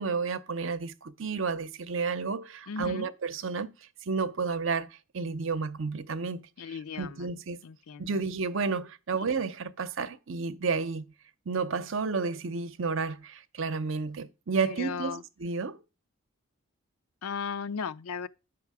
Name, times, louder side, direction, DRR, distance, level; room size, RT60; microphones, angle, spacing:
voice 1, 0.0-3.7 4.1-4.9 5.1-7.6 8.0-11.1 11.5-15.8, right 4 dB, 60° right, 0.6 m, -31 dB
voice 2, 2.7-3.1 6.6-7.3 7.6-8.1 14.6-15.2 17.2-18.3, left 6 dB, 90° left, 0.5 m, -36 dB
8.3 x 6.0 x 4.7 m
head